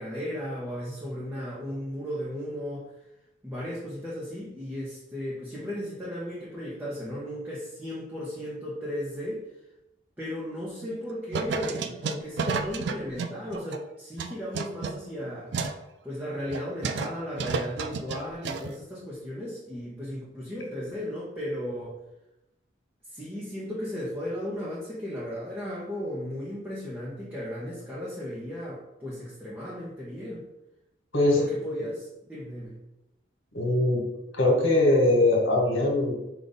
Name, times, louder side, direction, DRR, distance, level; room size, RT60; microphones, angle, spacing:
voice 1, 0.0-2.8 3.4-9.4 10.2-15.5 16.0-21.9 23.1-30.4 31.3-32.7, equal, 10° right, -8 dB, 0.8 m, -35 dB
sound 1, 10.6-11.0 11.3-13.8 14.2-15.8 16.2-16.3 16.5-17.1 17.4-18.7, right 5 dB, 60° right, 0.3 m, -32 dB
voice 2, 33.5-34.0 34.3-36.1, left 2 dB, 75° left, 0 dB, 1.4 m, -21 dB
5.1 x 2.5 x 3.9 m, 0.91 s
head